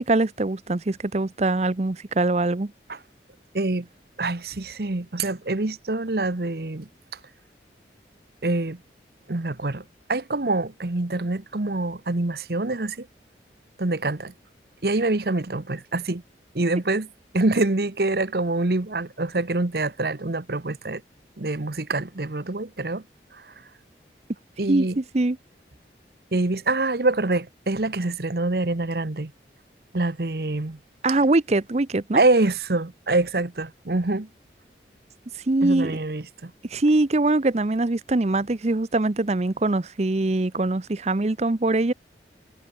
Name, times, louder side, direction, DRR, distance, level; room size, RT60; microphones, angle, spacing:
voice 1, 0.0-2.7 24.7-25.4 31.0-32.2 35.5-35.9 36.7-41.9, right 2 dB, 35° right, 0.7 m, -23 dB
voice 2, 3.5-3.9 4.2-6.9 8.4-8.8 9.3-9.8 10.1-13.1 13.8-14.3 14.8-16.2 16.5-17.1 17.3-21.0 21.4-23.0 24.6-25.0 26.3-29.3 29.9-30.8 32.1-34.3 35.6-36.5, right 2 dB, 60° right, 1.1 m, -25 dB
head